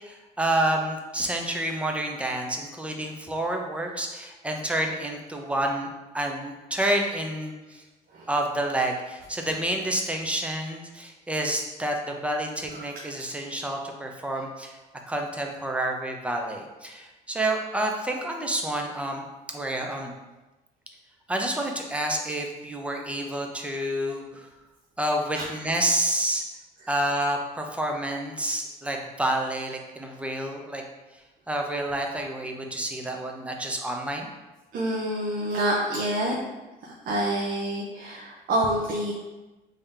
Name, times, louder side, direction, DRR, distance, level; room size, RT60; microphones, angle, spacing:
voice 1, 0.0-5.9 6.1-7.8 8.3-14.8 15.1-20.1 21.3-24.5 25.0-26.4 26.9-30.8 31.5-34.3, right 1 dB, 5° right, 1 dB, 0.5 m, -29 dB
voice 2, 34.7-36.3 36.8-39.1, right 1 dB, 60° right, -4 dB, 0.6 m, -27 dB
3.4 x 2.7 x 3.6 m, 1.1 s
cardioid pair, 110°, 17 cm